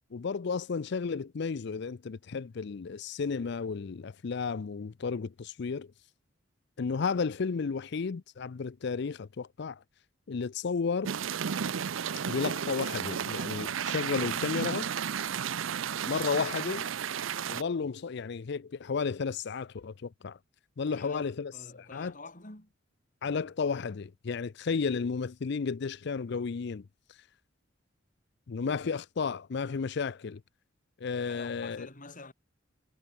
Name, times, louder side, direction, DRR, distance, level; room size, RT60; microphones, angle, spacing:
voice 1, 0.1-5.9 6.8-9.8 10.3-11.1 12.3-14.9 16.1-16.9 17.5-20.4 20.8-22.1 23.2-26.9 28.5-30.4 31.0-31.9, left 5 dB, 60° left, 0.5 m, -33 dB
thunders and heavy rain, 11.0-17.6, right 7 dB, 90° right, 0.6 m, -33 dB
voice 2, 20.9-22.7 31.2-32.3, left 3 dB, 40° left, 5.2 m, -48 dB
head